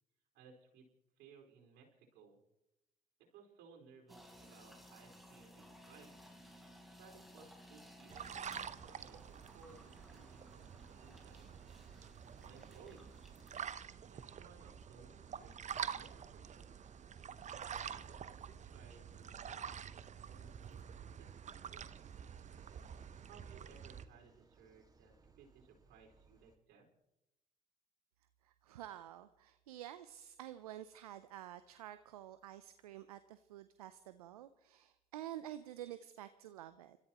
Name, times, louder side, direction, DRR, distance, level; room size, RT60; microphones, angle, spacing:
voice 1, 0.3-0.9 1.2-2.4 3.2-6.2 7.0-11.5 12.4-13.1 14.1-16.6 17.7-18.3 18.6-21.9 23.2-26.9, right 5 dB, 70° right, 0 dB, 4.7 m, -62 dB
sound 1, 4.1-13.7, equal, ahead, 3.6 m, -59 dB
sound 2, 8.1-24.1, right 8 dB, 40° right, 0.8 m, -48 dB
sound 3, 9.9-26.6, right 4 dB, 20° right, 1.9 m, -66 dB
voice 2, 28.4-37.0, right 12 dB, 90° right, 12 dB, 0.5 m, -50 dB
29.5 x 14.0 x 3.0 m, 0.89 s
hypercardioid pair, 55°, 19 cm